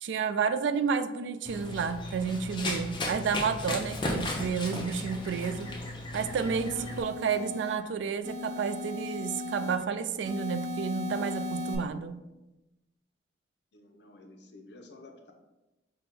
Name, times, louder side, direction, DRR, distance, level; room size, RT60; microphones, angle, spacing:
voice 1, 0.0-5.7 6.1-12.2, right 6 dB, 70° right, 11 dB, 0.3 m, -31 dB
Run, 1.5-7.0, left 2 dB, 25° left, 0.6 m, -35 dB
sound 1, 4.7-5.8 6.3-7.8 8.2-9.8 10.3-11.8, left 2 dB, 40° right, 0.7 m, -38 dB
voice 2, 13.7-15.3, left 2 dB, 65° left, 4 dB, 0.6 m, -51 dB
5.1 x 2.2 x 4.2 m, 1.0 s
head